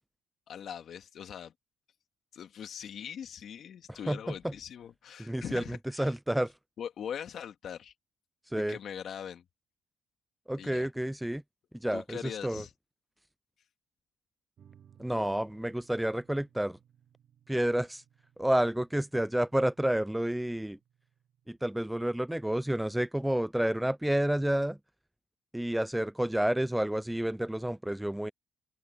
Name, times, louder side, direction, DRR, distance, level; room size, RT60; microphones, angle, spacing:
voice 1, 0.5-1.5 2.3-6.1 6.8-7.9 8.6-9.4 10.6-10.9 11.9-12.7, left 8 dB, 65° left, 2.0 m, -41 dB
voice 2, 3.9-4.5 5.2-6.5 8.5-8.8 10.5-11.4 11.7-12.6 15.0-16.8 17.5-18.0 18.4-20.8 21.5-24.8 25.5-28.3, right 1 dB, 5° right, 0.3 m, -30 dB
sound 1, 14.6-22.2, right 9 dB, 60° right, 2.8 m, -64 dB
open air
cardioid pair, 90°, 0 cm